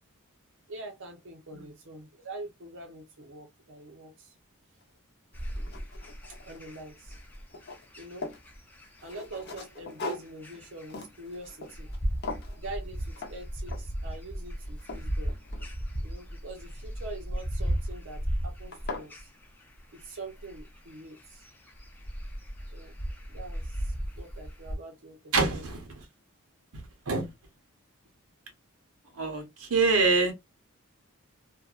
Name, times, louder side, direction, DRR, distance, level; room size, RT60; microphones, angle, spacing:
voice 1, 0.7-4.3 6.4-7.2 8.0-8.3 9.0-11.9 12.4-15.3 16.0-19.3 19.9-21.5 22.7-23.0 23.3-25.6, right 2 dB, 60° right, 0.6 m, -44 dB
sound 1, 4.8-4.9 5.4-6.8 7.1-8.5 9.0-12.0 12.2-12.6 13.2-13.4 13.7-14.0 14.5-16.0 17.5-17.9 18.4-18.5 18.7-19.1, left 3 dB, 50° left, 0.7 m, -41 dB
sound 2, 5.3-24.7, equal, 10° left, 0.5 m, -36 dB
voice 2, 25.3-25.8 27.1-27.3 29.2-30.3, right 4 dB, 85° right, 0.9 m, -25 dB
2.6 x 2.2 x 2.3 m
head